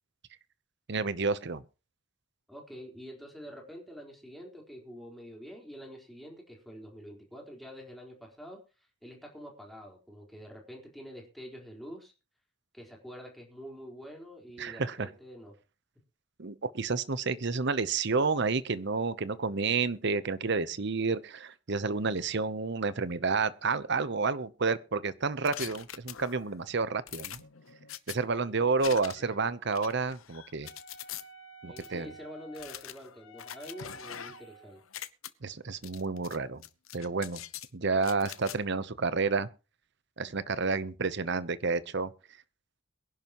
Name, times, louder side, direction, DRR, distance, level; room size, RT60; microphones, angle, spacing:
voice 1, 0.9-1.6 14.6-15.1 16.4-27.4 28.1-30.7 31.6-32.1 35.4-36.6 36.9-37.4 37.7-39.5 40.2-42.1, right 4 dB, 55° right, 0.9 m, -30 dB
voice 2, 2.5-8.6 9.0-12.1 12.7-15.5 31.7-34.8, equal, ahead, 4.1 m, -47 dB
sound 1, 25.5-26.6 27.1-28.2 28.8-29.4 29.7-31.2 31.8-31.9 32.5-34.5 34.8-35.3 35.8-36.4 36.6-37.7 38.0-38.6, left 11 dB, 85° left, 0.9 m, -43 dB
Wind instrument woodwind instrument, 30.6-34.8, right 1 dB, 65° left, 2.0 m, -52 dB
22.5 x 11.0 x 3.1 m
head